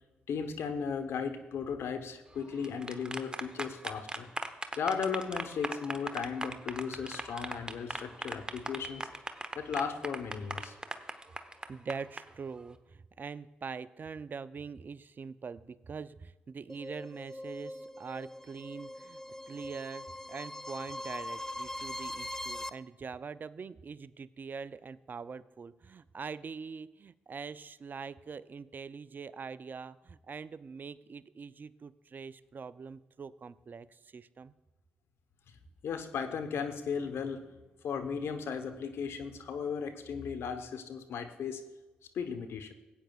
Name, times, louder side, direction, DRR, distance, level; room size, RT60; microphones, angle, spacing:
voice 1, 0.3-4.3 4.7-9.1 9.5-10.7 35.8-37.5 37.8-41.6 42.1-42.7, left 6 dB, 65° left, 7 dB, 1.0 m, -36 dB
sound 1, 2.4-12.2, right 2 dB, 20° right, 1.0 m, -39 dB
voice 2, 11.7-34.5, right 5 dB, 45° right, 17 dB, 0.4 m, -43 dB
sound 2, 16.7-22.7, left 1 dB, 10° left, 0.5 m, -42 dB
17.0 x 9.0 x 2.4 m, 1.1 s
hypercardioid pair, 40°, 4 cm